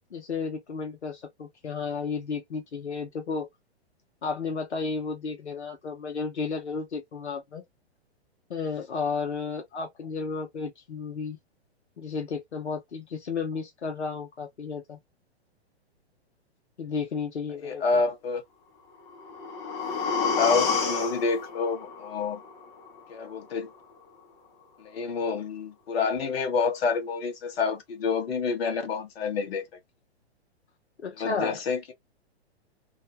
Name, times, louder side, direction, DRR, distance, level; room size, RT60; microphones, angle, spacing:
voice 1, 0.1-3.5 4.2-7.6 8.5-11.4 12.0-15.0 16.8-17.8 31.0-31.6, left 5 dB, 85° left, 0.9 m, -33 dB
voice 2, 17.6-18.4 20.4-22.4 23.1-23.7 24.8-29.6 31.2-31.9, left 4 dB, 65° left, 0.9 m, -28 dB
sound 1, 19.1-23.1 23.4-23.5, left 5 dB, 20° left, 0.4 m, -29 dB
2.6 x 2.1 x 2.6 m
hypercardioid pair, 115°, 33 cm